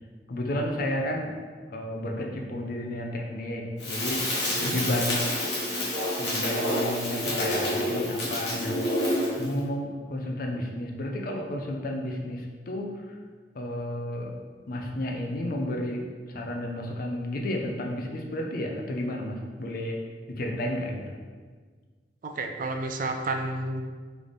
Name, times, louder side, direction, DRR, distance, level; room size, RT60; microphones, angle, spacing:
voice 1, 0.3-1.3 1.7-4.3 4.6-5.3 6.2-8.9 9.4-13.2 13.5-14.3 14.7-20.0 20.3-21.0, left 1 dB, 55° left, 1 dB, 0.6 m, -32 dB
Crackle, 3.8-9.5, left 1 dB, 70° left, 1.3 m, -28 dB
voice 2, 22.2-23.8, right 2 dB, 50° right, 5 dB, 0.4 m, -31 dB
3.3 x 3.3 x 4.0 m, 1.5 s
head